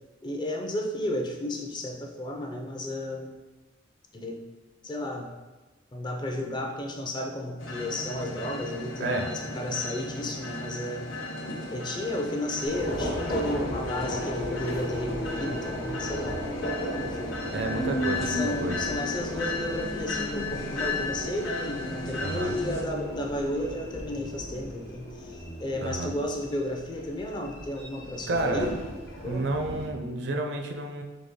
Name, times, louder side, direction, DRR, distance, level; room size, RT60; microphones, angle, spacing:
voice 1, 0.2-3.3 4.1-4.4 4.8-5.3 5.9-11.1 11.7-16.4 17.0-17.4 18.2-28.8 29.2-29.5, left 1 dB, 25° left, 2 dB, 0.4 m, -33 dB
sound 1, 7.6-22.8, left 3 dB, 85° left, 0.8 m, -36 dB
voice 2, 9.0-9.3 17.5-19.0 22.2-22.6 25.8-26.1 28.3-28.7 29.2-31.0, right 2 dB, 60° right, 3 dB, 0.5 m, -30 dB
Subway metro underground, 12.7-29.9, equal, 55° left, 0.8 m, -35 dB
4.0 x 3.4 x 3.6 m, 1.2 s
head